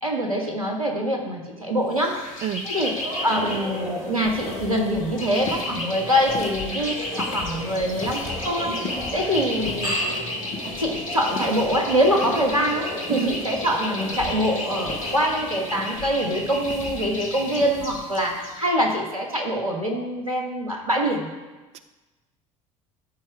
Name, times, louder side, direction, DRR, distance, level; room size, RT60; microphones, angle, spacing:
voice 1, 0.0-2.2 2.6-2.9 3.2-8.7 9.1-9.9 10.8-21.3, equal, 90° right, 0 dB, 1.3 m, -24 dB
sound 1, 1.9-18.6, left 1 dB, 75° left, 1.4 m, -34 dB
voice 2, 2.4-2.7 13.1-13.4 21.7-21.8, right 11 dB, 40° right, 9 dB, 0.5 m, -28 dB
sound 2, 2.7-15.8, equal, 75° right, 3.2 m, -35 dB
sound 3, 4.2-18.1, left 3 dB, 40° left, 1.0 m, -39 dB
13.0 x 4.3 x 4.8 m, 1.2 s
figure-of-eight pair, 65°, 17 cm